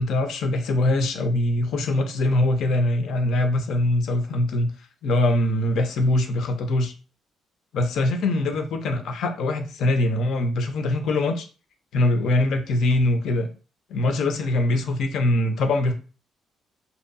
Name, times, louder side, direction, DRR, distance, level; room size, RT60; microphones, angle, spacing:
voice 1, 0.0-4.7 5.0-6.9 7.7-11.5 11.9-13.5 13.9-15.9, left 1 dB, 75° left, 5 dB, 0.5 m, -22 dB
2.7 x 2.5 x 2.3 m, 0.35 s
cardioid pair, 90°, 0 cm